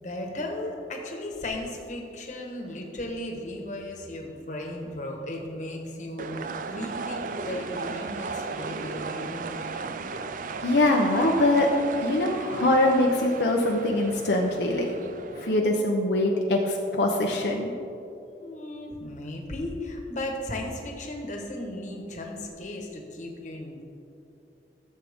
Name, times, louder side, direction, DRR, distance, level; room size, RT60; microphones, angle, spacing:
voice 1, 0.0-10.3 18.4-23.8, left 1 dB, 45° left, 1 dB, 1.3 m, -36 dB
sound 1, 6.2-15.6, right 4 dB, 50° right, 0.4 m, -36 dB
voice 2, 10.6-11.7 12.0-14.9 15.4-17.7, left 1 dB, 75° left, 0 dB, 0.8 m, -23 dB
14.5 x 7.4 x 3.6 m, 2.8 s
head